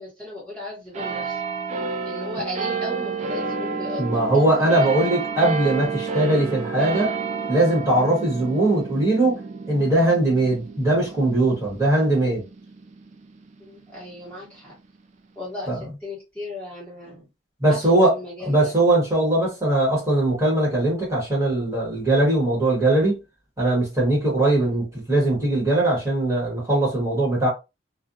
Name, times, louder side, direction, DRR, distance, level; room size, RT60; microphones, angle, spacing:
voice 1, 0.0-1.4 2.0-4.3 4.6-4.7 5.0-5.1 13.6-14.7 15.4-17.2 17.7-18.7 24.6-24.8, left 1 dB, 5° left, 1.1 m, -36 dB
sound 1, 0.9-13.8 14.5-14.6, right 5 dB, 35° right, 0.3 m, -30 dB
voice 2, 4.0-7.1 7.5-9.4 9.7-12.4 15.7-15.8 17.6-18.1 18.4-23.2 23.6-27.5, right 1 dB, 15° right, 1.1 m, -20 dB
2.5 x 2.1 x 2.6 m
head